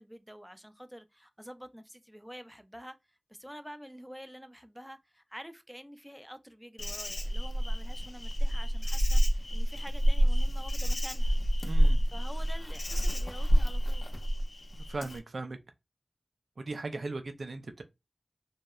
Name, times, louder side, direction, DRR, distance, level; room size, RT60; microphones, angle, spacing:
voice 1, 0.0-11.4 12.1-14.0, equal, ahead, 0.3 m, -48 dB
Insect, 6.8-15.2, equal, 70° left, 0.5 m, -28 dB
voice 2, 11.6-12.0 14.7-15.6 16.6-17.8, right 3 dB, 90° right, 0.3 m, -38 dB
2.7 x 2.0 x 2.2 m
wide cardioid pair, 65°, 0 cm